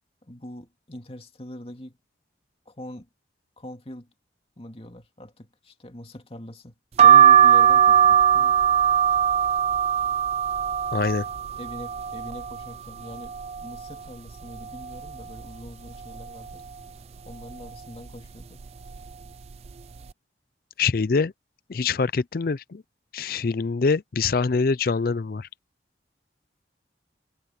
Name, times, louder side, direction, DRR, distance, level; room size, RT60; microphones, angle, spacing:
voice 1, 0.2-2.0 2.7-3.1 3.6-4.1 4.6-6.8 7.0-8.6 11.6-16.7 17.2-18.6, left 1 dB, 30° left, 2.3 m, -42 dB
sound 1, 7.0-12.7 13.1-13.9 14.3-14.4 14.5-15.7 16.2-16.5 17.3-17.6 18.4-18.6 18.9-19.1, right 9 dB, 35° right, 0.3 m, -19 dB
voice 2, 10.9-11.2 20.8-21.3 21.7-22.8 23.1-25.5, left 4 dB, 55° left, 0.5 m, -24 dB
head